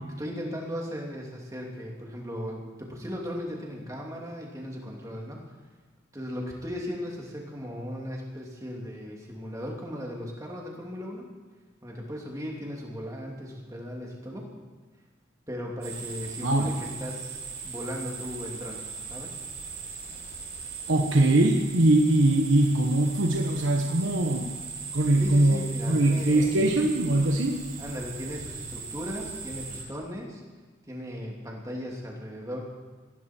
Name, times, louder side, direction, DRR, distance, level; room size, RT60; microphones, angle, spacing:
voice 1, 0.2-5.5 6.1-11.3 11.8-14.5 15.5-18.8 19.1-19.4 25.2-26.7 27.8-30.4 30.9-32.6, equal, 15° right, -1 dB, 2.7 m, -37 dB
sound 1, 15.8-29.8, right 5 dB, 45° right, 3.9 m, -39 dB
voice 2, 16.4-16.7 20.9-24.5 24.9-25.6 25.9-27.6, right 1 dB, 85° right, 2 dB, 1.3 m, -22 dB
19.5 x 15.0 x 4.5 m, 1.3 s
head